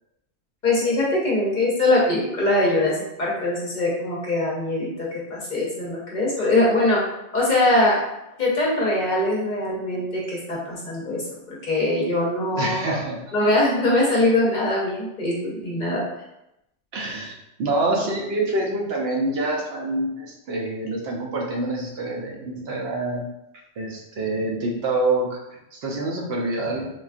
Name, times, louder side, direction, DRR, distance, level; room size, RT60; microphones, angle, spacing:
voice 1, 0.6-7.1 7.3-8.0 8.4-13.0 13.3-16.0 17.9-18.0, left 2 dB, 50° left, -4 dB, 0.7 m, -22 dB
voice 2, 12.6-13.5 16.9-17.3 17.6-23.3 23.8-26.9, right 2 dB, 65° right, -1 dB, 0.8 m, -26 dB
3.8 x 2.2 x 2.4 m, 0.87 s
omnidirectional pair, 1.2 m